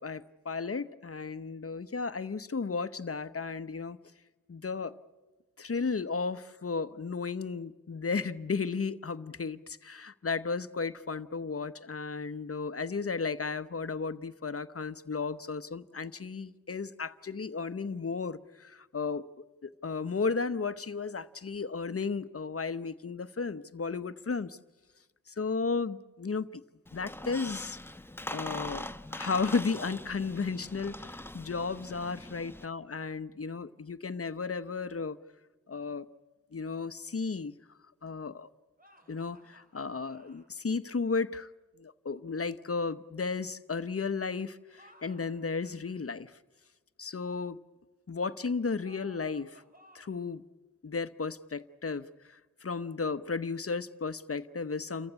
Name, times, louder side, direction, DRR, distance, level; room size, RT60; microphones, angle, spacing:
voice 1, 0.0-4.0 4.5-4.9 5.6-19.3 19.6-24.6 25.3-26.5 26.9-27.8 28.3-35.2 35.7-36.1 36.5-37.5 38.0-38.5 39.1-41.5 41.8-46.3 47.0-47.6 48.1-49.6 49.9-50.4 50.8-55.1, left 4 dB, 50° left, 14 dB, 0.9 m, -34 dB
Squeak, 26.9-32.7, left 1 dB, 5° left, 0.9 m, -42 dB
sound 1, 38.8-40.5 44.6-46.0 48.8-50.3, equal, 30° right, 3.9 m, -60 dB
28.5 x 15.0 x 9.8 m, 1.2 s
cardioid pair, 45°, 31 cm